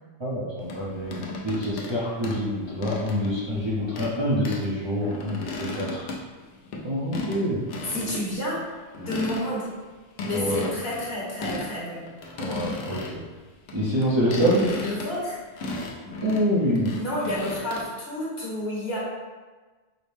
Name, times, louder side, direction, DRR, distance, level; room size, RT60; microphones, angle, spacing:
voice 1, 0.2-6.0 6.8-7.6 7.9-8.1 10.3-10.7 12.4-13.2 13.7-14.9 16.2-17.0, equal, 35° right, -9 dB, 0.5 m, -26 dB
sound 1, 0.7-2.0 2.2-3.4 3.9-4.2 4.4-4.7 5.0-6.8 7.1-7.4 7.7-8.2 8.5-8.6 8.9-9.7 10.2-11.7 12.0-13.2 13.7-17.8, left 2 dB, 75° left, 0.9 m, -35 dB
voice 2, 7.8-8.6 9.1-9.7 10.2-12.0 14.7-15.4 17.0-19.0, left 1 dB, 55° left, -7 dB, 1.3 m, -30 dB
4.9 x 2.1 x 3.2 m, 1.3 s
omnidirectional pair, 1.2 m